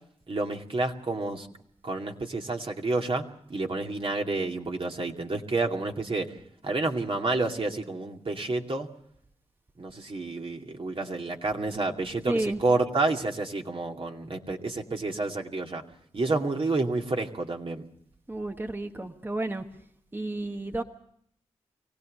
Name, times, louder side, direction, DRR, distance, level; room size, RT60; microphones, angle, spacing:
voice 1, 0.3-1.5 1.8-6.4 6.6-8.9 9.8-15.8 16.1-17.8, right 3 dB, 50° right, 2 dB, 2.5 m, -29 dB
voice 2, 12.3-12.6 18.3-19.6 20.1-20.8, right 2 dB, 20° right, 5 dB, 1.4 m, -31 dB
24.0 x 17.0 x 6.6 m, 0.68 s
cardioid pair, 45°, 12 cm